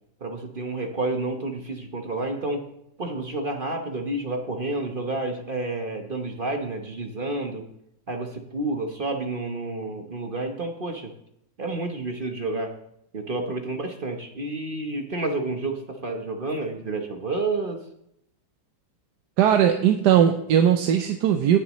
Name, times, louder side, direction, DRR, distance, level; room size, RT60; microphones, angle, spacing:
voice 1, 0.2-2.7 3.0-7.6 8.1-11.1 11.6-12.7 13.1-17.8, right 2 dB, 35° right, 4 dB, 1.0 m, -30 dB
voice 2, 19.4-21.6, right 9 dB, 75° right, 5 dB, 1.2 m, -19 dB
18.0 x 6.8 x 3.1 m, 0.75 s
omnidirectional pair, 1.9 m